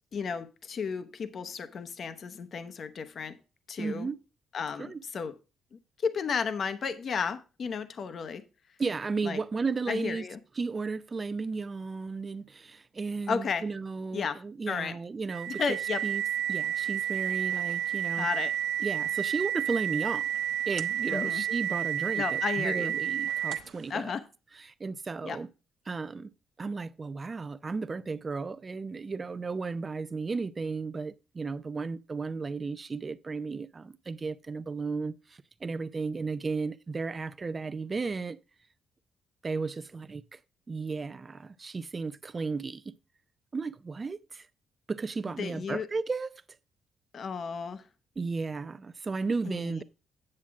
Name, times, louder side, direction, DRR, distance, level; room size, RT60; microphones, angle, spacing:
voice 1, 0.1-3.4 3.7-4.1 4.5-5.3 6.0-8.4 9.2-9.4 9.9-10.4 13.3-13.6 14.1-14.4 14.7-15.0 15.5-16.0 18.2-18.5 21.1-21.4 22.2-22.9 23.9-24.2 25.2-25.4 45.4-45.9 47.1-47.8 49.4-49.8, left 6 dB, 55° left, 0.9 m, -33 dB
voice 2, 3.8-4.2 4.8-5.0 8.8-10.3 10.6-15.8 16.0-16.2 16.5-18.3 18.8-20.3 20.7-24.1 24.6-25.5 25.9-26.3 26.6-38.4 39.4-40.4 40.7-42.9 43.5-44.5 44.9-46.4 48.2-49.8, right 4 dB, 30° right, 0.5 m, -34 dB
sound 1, 15.3-23.8, right 10 dB, 80° right, 1.0 m, -31 dB
8.8 x 7.4 x 3.5 m
cardioid pair, 90°, 0 cm